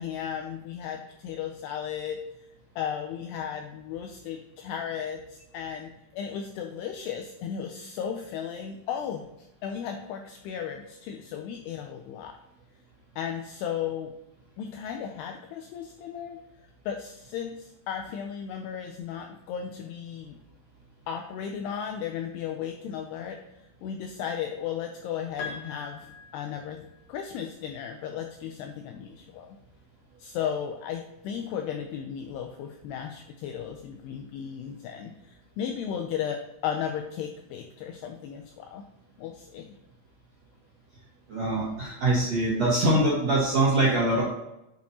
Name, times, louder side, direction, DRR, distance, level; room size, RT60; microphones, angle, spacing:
voice 1, 0.0-2.2 2.8-12.4 13.2-14.1 14.6-16.4 16.9-20.4 21.1-26.8 27.1-29.6 30.2-38.8 39.2-39.7, left 8 dB, 90° left, 4 dB, 2.3 m, -35 dB
Piano, 25.4-27.1, left 4 dB, 60° left, 2.7 m, -42 dB
voice 2, 41.3-44.2, right 1 dB, 60° right, -5 dB, 1.8 m, -23 dB
8.4 x 8.0 x 2.9 m, 0.88 s
omnidirectional pair, 5.4 m